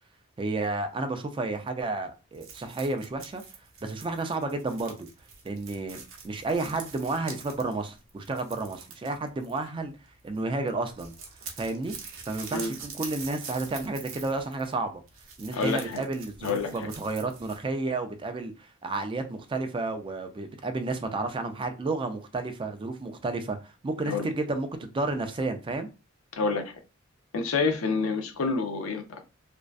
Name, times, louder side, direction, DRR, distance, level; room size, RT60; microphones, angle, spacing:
voice 1, 0.4-3.4 3.8-5.1 5.4-6.0 6.2-9.9 10.2-11.1 11.6-12.0 12.3-15.0 15.4-25.9, right 3 dB, 25° right, 0.3 m, -31 dB
sound 1, 2.3-10.0 10.2-10.4 10.7-17.6, right 5 dB, 70° right, 0.6 m, -45 dB
voice 2, 15.5-16.0 16.4-16.9 24.0-24.3 26.3-26.7 27.3-29.2, left 4 dB, 90° left, 0.5 m, -28 dB
2.5 x 2.1 x 2.3 m
head